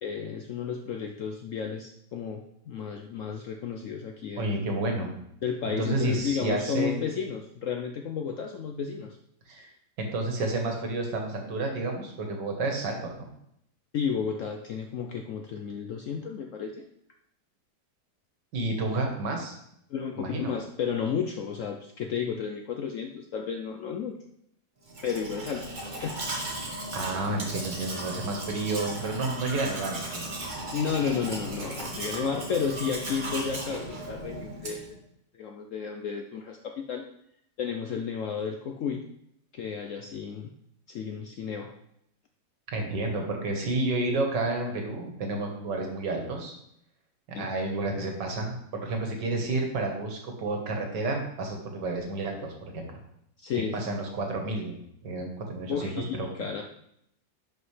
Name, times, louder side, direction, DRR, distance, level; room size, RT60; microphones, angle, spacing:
voice 1, 0.0-4.5 5.4-9.2 13.9-16.8 19.9-24.2 25.0-26.3 30.7-34.8 35.3-37.1 37.6-39.0 39.5-40.5 40.9-41.7 47.3-47.5 53.4-53.9 55.7-56.6, left 6 dB, 70° left, 3 dB, 0.7 m, -32 dB
voice 2, 4.4-5.1 5.7-7.0 9.5-9.7 10.0-13.3 18.5-19.6 20.2-20.5 26.9-30.3 42.7-46.5 47.3-53.0 53.5-56.3, right 2 dB, 80° right, 2 dB, 2.0 m, -30 dB
Domestic sounds home sounds, 24.9-35.0, right 1 dB, 30° right, 1.3 m, -36 dB
11.0 x 5.1 x 3.2 m, 0.75 s
omnidirectional pair, 1.9 m